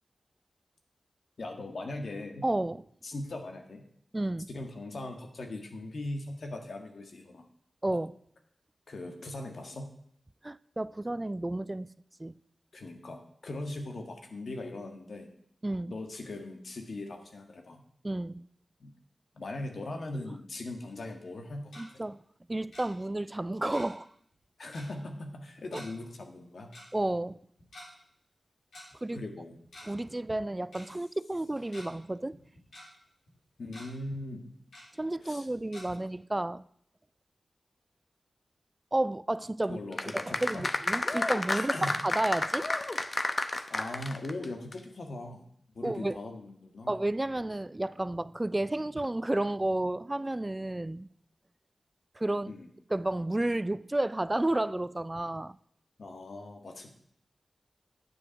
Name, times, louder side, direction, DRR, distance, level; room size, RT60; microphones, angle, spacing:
voice 1, 1.4-2.4 3.0-3.8 4.5-7.4 7.9-8.0 8.9-9.9 12.7-15.3 15.9-17.8 18.8-18.9 19.3-22.0 24.6-26.7 29.1-29.5 33.6-34.5 35.2-35.5 39.7-40.7 41.5-42.0 43.7-45.5 45.7-46.9 52.5-52.7 56.0-56.9, left 2 dB, 70° left, 1.6 m, -40 dB
voice 2, 2.4-2.8 4.1-4.5 7.8-8.1 10.4-11.9 12.2-12.3 15.6-15.9 18.0-18.4 21.8-22.2 22.5-24.1 26.9-27.4 29.0-29.2 29.9-32.4 35.0-36.7 38.9-42.7 45.8-46.2 46.9-51.1 52.2-52.5 52.9-55.6, right 1 dB, 25° right, 0.4 m, -31 dB
Tick-tock, 21.5-21.8 22.7-22.8 23.7-24.1 24.3-24.4 24.7-24.9 25.7-25.9 26.7-26.8 27.6-27.9 28.7-28.8 29.6-30.0 30.3-30.4 30.7-30.8 31.4-31.8 32.3-32.8 33.3-33.4 33.7-33.9 34.7-34.8 35.7-35.8, left 1 dB, 90° left, 3.8 m, -48 dB
sound 1, 39.9-44.4 44.7-44.8, left 2 dB, 45° left, 0.9 m, -31 dB
9.8 x 7.5 x 6.3 m
cardioid pair, 45°, 0 cm